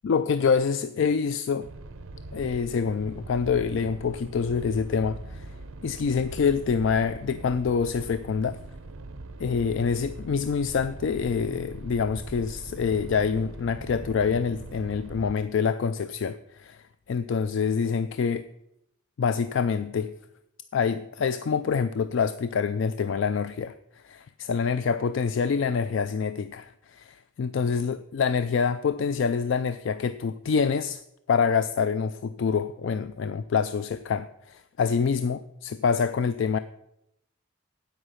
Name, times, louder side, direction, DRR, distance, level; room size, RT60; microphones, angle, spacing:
voice 1, 0.0-1.7 2.3-5.5 5.8-8.6 9.4-18.5 19.2-20.1 20.7-23.7 24.0-31.0 31.3-36.6, left 6 dB, 60° left, 0.3 m, -26 dB
sound 1, 1.6-15.3, right 2 dB, 75° right, 0.8 m, -41 dB
9.1 x 8.0 x 5.6 m
head